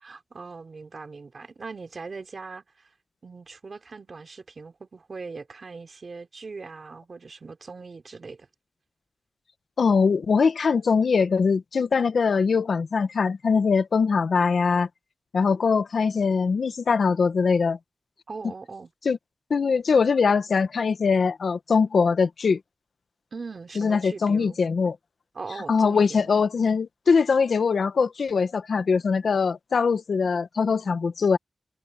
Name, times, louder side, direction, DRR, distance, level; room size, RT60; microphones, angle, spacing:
voice 1, 0.0-2.9 3.2-8.5 18.3-18.9 23.3-24.6 25.3-26.3, right 4 dB, 45° right, 3.5 m, -40 dB
voice 2, 9.8-14.9 15.3-17.8 19.0-19.2 19.5-22.6 23.8-24.9 25.7-31.4, left 5 dB, 65° left, 1.3 m, -22 dB
wide cardioid pair, 130°, 0 cm